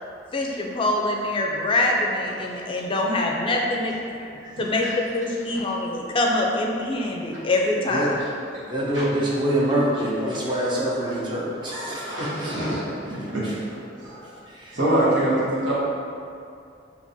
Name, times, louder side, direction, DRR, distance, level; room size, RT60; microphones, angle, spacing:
voice 1, 0.3-3.9 4.6-4.9 5.1-8.2, left 2 dB, 30° left, -1 dB, 0.4 m, -24 dB
voice 2, 8.6-12.9 13.4-13.5 14.5-14.8, right 1 dB, 25° right, -5 dB, 0.6 m, -26 dB
voice 3, 12.1-12.8 13.1-13.4 13.9-14.3 14.7-15.7, right 1 dB, 90° right, -8 dB, 1.2 m, -24 dB
5.1 x 2.8 x 2.7 m, 2.5 s
head